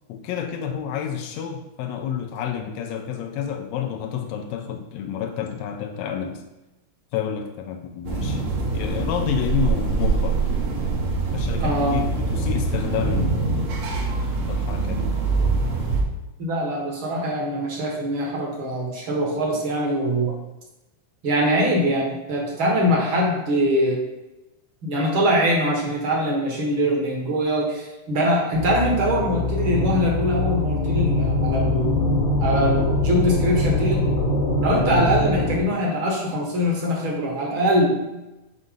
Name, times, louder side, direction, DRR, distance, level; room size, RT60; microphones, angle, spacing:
voice 1, 0.1-6.4 7.1-10.4 11.3-13.6 14.5-15.2, left 8 dB, 80° left, 4 dB, 1.6 m, -29 dB
sound 1, 8.0-16.0, right 3 dB, 90° right, 2.9 m, -24 dB
voice 2, 11.6-12.0 16.4-20.4 21.2-24.0 24.8-32.0 32.4-34.1 34.6-38.1, equal, 50° right, -2 dB, 1.8 m, -23 dB
sound 2, 28.5-35.6, left 2 dB, 45° left, 1.2 m, -23 dB
9.0 x 4.1 x 3.7 m, 1.0 s
omnidirectional pair, 3.6 m